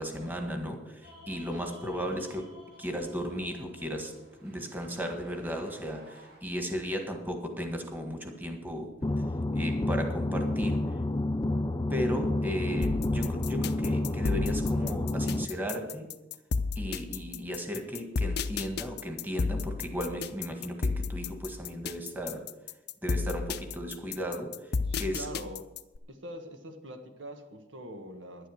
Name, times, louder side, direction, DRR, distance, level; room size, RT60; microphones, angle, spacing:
voice 1, 0.0-2.5 2.8-4.1 4.4-8.9 9.5-10.8 11.9-16.1 16.7-22.4 23.0-24.5 25.0-25.3, equal, 10° right, 4 dB, 1.6 m, -35 dB
sound 1, 1.0-6.4, left 1 dB, 65° right, 5.6 m, -53 dB
voice 2, 1.7-2.1 22.2-22.5 24.8-25.7 26.1-28.5, right 1 dB, 90° right, 6 dB, 1.5 m, -44 dB
sound 2, 9.0-15.5, left 1 dB, 20° left, 0.5 m, -29 dB
sound 3, 12.8-26.0, left 4 dB, 60° left, 0.6 m, -32 dB
11.5 x 10.5 x 6.4 m, 1.0 s
head